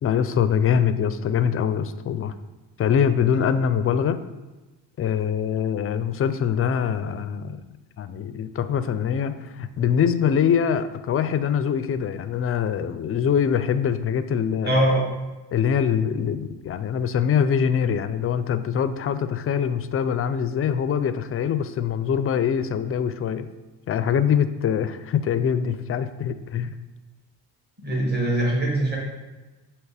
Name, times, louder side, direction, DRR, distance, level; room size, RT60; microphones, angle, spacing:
voice 1, 0.0-2.3 2.8-4.2 5.0-7.6 8.0-14.8 15.5-23.5 23.9-26.7, left 8 dB, 35° left, 12 dB, 0.4 m, -23 dB
voice 2, 14.6-15.1 27.8-29.0, right 1 dB, 20° right, -3 dB, 1.6 m, -22 dB
7.6 x 3.0 x 4.7 m, 1.1 s
cardioid pair, 95°, 43 cm